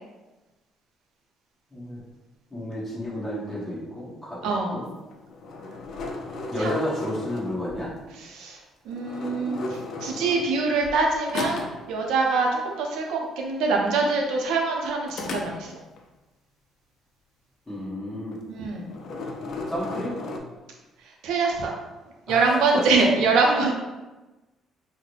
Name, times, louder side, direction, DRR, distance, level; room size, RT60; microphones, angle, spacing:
voice 1, 2.5-4.4 4.7-4.9 6.5-7.9 17.7-18.4 19.7-20.1 22.3-22.9, equal, 10° left, -9 dB, 1.4 m, -31 dB
sound 1, 5.1-7.9 8.9-11.0 11.3-11.9 15.1-16.0 18.3-18.6 18.9-20.4, left 3 dB, 50° left, 0.4 m, -35 dB
voice 2, 8.2-8.6 8.9-15.7 18.5-18.9 21.2-21.7 22.3-23.7, right 4 dB, 85° right, 1 dB, 0.5 m, -24 dB
3.8 x 2.1 x 3.2 m, 1.1 s
cardioid pair, 150°, 0 cm